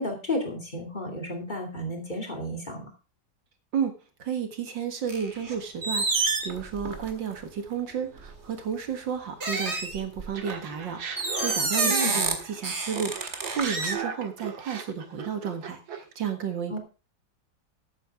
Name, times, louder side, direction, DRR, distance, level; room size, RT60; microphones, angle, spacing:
voice 1, 0.0-2.9 11.8-12.2 16.7-16.8, left 1 dB, 25° left, 4 dB, 2.7 m, -32 dB
voice 2, 4.2-16.8, right 7 dB, 70° right, 6 dB, 2.3 m, -32 dB
sound 1, 5.1-5.6 5.8-7.3 8.2-8.4 9.4-10.5 11.2-12.3 12.6-14.0, right 3 dB, 35° right, 2.1 m, -28 dB
Laughter, 10.3-12.6 12.9-16.1, right 6 dB, 90° right, 2.4 m, -37 dB
14.0 x 9.0 x 3.6 m, 0.31 s
omnidirectional pair, 2.1 m